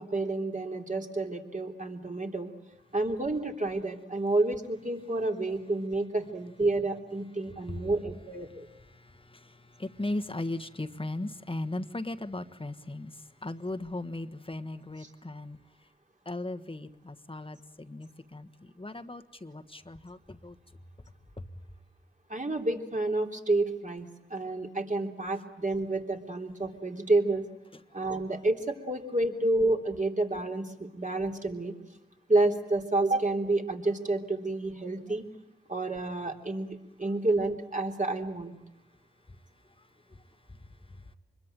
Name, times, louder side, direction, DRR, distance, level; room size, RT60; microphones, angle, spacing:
voice 1, 0.0-2.5 2.9-8.7 15.0-15.1 22.3-24.1 24.3-27.5 27.9-31.8 32.3-35.3 35.7-38.5, right 2 dB, 35° right, 2 dB, 3.4 m, -29 dB
voice 2, 8.9-15.6 16.2-20.6 21.4-21.5 40.1-40.2 40.5-40.6 40.9-41.1, left 2 dB, 25° left, 7 dB, 1.5 m, -38 dB
25.5 x 22.0 x 9.1 m, 0.90 s
cardioid pair, 45°, 21 cm